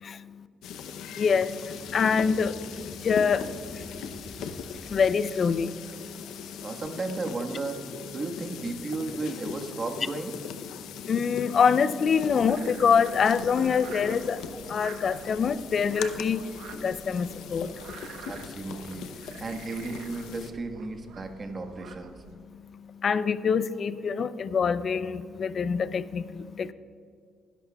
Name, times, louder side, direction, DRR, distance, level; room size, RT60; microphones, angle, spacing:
voice 1, 0.0-0.4 1.2-3.5 3.7-3.9 4.8-5.8 6.1-6.3 11.1-14.4 14.7-16.4 16.8-17.7 23.0-26.7, left 6 dB, 50° left, 14 dB, 0.5 m, -25 dB
sound 1, 0.6-20.5, left 7 dB, 85° left, 0.7 m, -40 dB
sound 2, 1.5-6.0, left 1 dB, 20° left, 2.0 m, -48 dB
voice 2, 6.3-7.8 8.1-10.3 18.3-22.1, right 3 dB, 35° right, 5 dB, 1.4 m, -34 dB
Frog, 12.1-22.3, right 6 dB, 85° right, 1.0 m, -47 dB
21.0 x 11.0 x 2.3 m, 2.2 s
cardioid pair, 90°, 0 cm